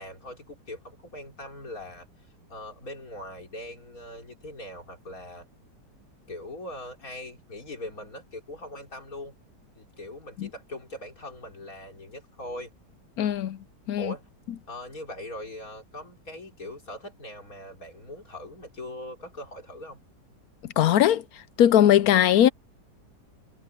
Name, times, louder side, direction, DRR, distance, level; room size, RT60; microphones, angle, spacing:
voice 1, 0.0-2.1 2.5-5.5 6.3-9.3 9.7-12.7 14.0-14.3 14.7-20.0, left 1 dB, 50° left, 4.8 m, -41 dB
voice 2, 13.2-13.6 13.9-14.1 20.8-21.2 21.6-22.5, left 11 dB, 70° left, 1.0 m, -19 dB
omnidirectional pair, 1.9 m